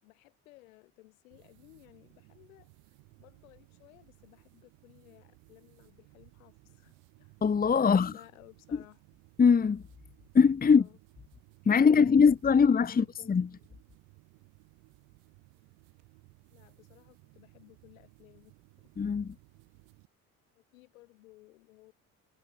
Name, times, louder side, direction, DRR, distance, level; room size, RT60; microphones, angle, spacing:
voice 1, 0.0-2.7 3.2-7.4 7.8-9.0 10.7-11.0 11.8-13.7 16.5-18.5 20.5-21.9, left 20 dB, 75° left, 6.8 m, -57 dB
sound 1, 1.3-20.1, right 29 dB, 65° right, 4.9 m, -60 dB
voice 2, 7.4-8.1 9.4-9.8 10.3-10.8 11.7-13.5 19.0-19.3, left 6 dB, 20° left, 1.1 m, -22 dB
figure-of-eight pair, 55°, 42 cm